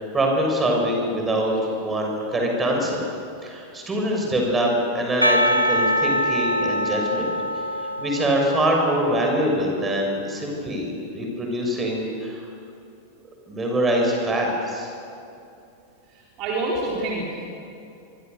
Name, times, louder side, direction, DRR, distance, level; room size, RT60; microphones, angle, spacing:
voice 1, 0.0-3.0 3.4-12.4 13.5-14.9, right 1 dB, 15° right, 0 dB, 6.7 m, -24 dB
Percussion, 5.2-9.1, equal, 90° left, 1.3 m, -24 dB
voice 2, 16.1-17.5, right 2 dB, 40° right, -3 dB, 4.3 m, -27 dB
25.0 x 24.5 x 6.9 m, 2.7 s
figure-of-eight pair, 90°, 0 cm